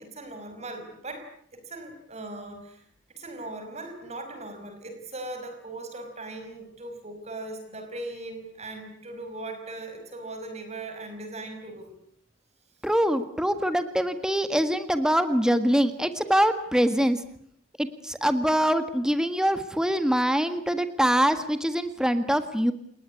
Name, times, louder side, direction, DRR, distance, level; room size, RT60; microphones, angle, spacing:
voice 1, 0.0-2.8 3.1-12.0, right 2 dB, 35° right, 7 dB, 5.3 m, -39 dB
voice 2, 12.8-17.2 17.8-22.7, equal, 5° right, 9 dB, 1.7 m, -24 dB
29.0 x 20.0 x 9.8 m, 0.67 s
head